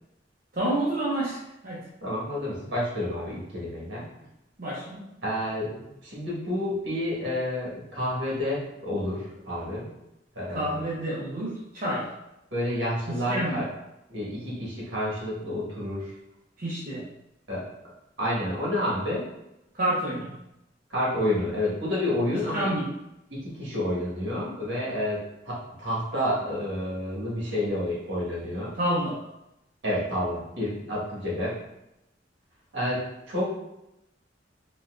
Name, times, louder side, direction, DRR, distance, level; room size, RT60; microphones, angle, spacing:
voice 1, 0.5-1.4 1.6-1.8 4.6-5.1 10.5-12.1 13.1-13.6 16.6-17.0 19.7-20.3 22.5-22.9 28.8-29.2, right 1 dB, 50° right, -8 dB, 0.7 m, -28 dB
voice 2, 2.0-4.1 5.2-9.9 10.3-10.8 12.5-13.7 14.1-16.1 17.5-17.6 18.2-19.2 20.9-22.7 23.3-28.7 29.8-31.6 32.7-33.5, left 1 dB, 70° right, -6 dB, 1.4 m, -29 dB
4.0 x 2.3 x 2.4 m, 0.88 s
head